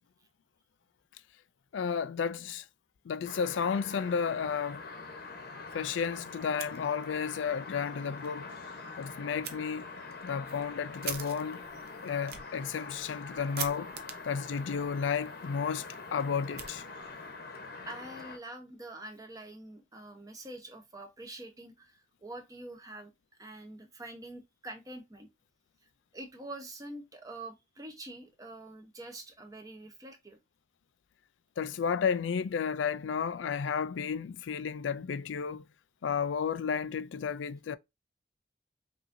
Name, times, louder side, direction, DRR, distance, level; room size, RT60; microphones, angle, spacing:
voice 1, 1.7-2.6 3.1-4.8 5.7-8.5 9.0-9.9 10.2-11.6 12.0-13.9 14.3-15.9 16.1-16.8 31.6-35.6 36.0-37.8, left 6 dB, 85° left, 0.4 m, -32 dB
sound 1, 3.2-18.4, left 3 dB, 55° left, 0.9 m, -44 dB
Fire, 6.4-7.4 7.7-7.8 8.2-8.3 9.4-9.6 10.1-17.3, right 8 dB, 55° right, 0.8 m, -45 dB
voice 2, 17.9-23.1 23.4-25.3 26.1-30.4, right 1 dB, 20° right, 0.9 m, -45 dB
5.5 x 2.7 x 2.6 m
head